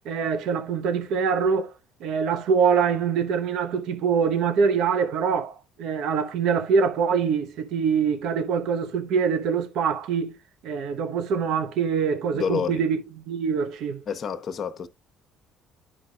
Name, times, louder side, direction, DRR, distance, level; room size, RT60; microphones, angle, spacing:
voice 1, 0.1-1.7 2.0-10.4 10.6-13.0 13.3-14.0, right 6 dB, 70° right, 0.8 m, -24 dB
voice 2, 12.3-12.9 14.1-14.9, left 7 dB, 50° left, 0.9 m, -29 dB
11.0 x 5.1 x 2.2 m
supercardioid pair, 75°, 0 cm